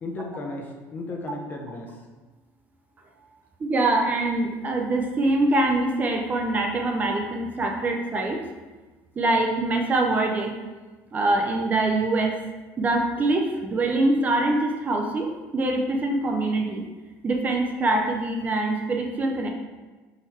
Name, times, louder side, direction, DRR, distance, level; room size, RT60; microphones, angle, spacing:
voice 1, 0.0-2.0, left 2 dB, 30° left, 1 dB, 0.6 m, -35 dB
voice 2, 3.6-8.4 9.2-10.5 11.1-12.4 12.8-16.8 17.2-19.5, right 2 dB, 25° right, 2 dB, 0.4 m, -24 dB
3.9 x 3.0 x 4.1 m, 1.3 s
cardioid pair, 145°, 7 cm